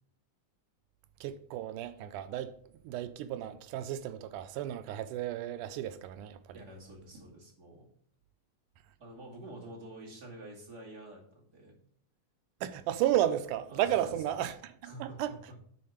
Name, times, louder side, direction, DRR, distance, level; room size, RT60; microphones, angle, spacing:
voice 1, 1.2-2.5 2.8-6.6 12.6-15.3, right 12 dB, 85° right, 2.1 m, -33 dB
voice 2, 6.5-7.9 9.0-11.8 13.7-14.1 14.8-15.6, right 1 dB, 30° right, 2.7 m, -48 dB
9.5 x 4.3 x 5.0 m
omnidirectional pair, 3.7 m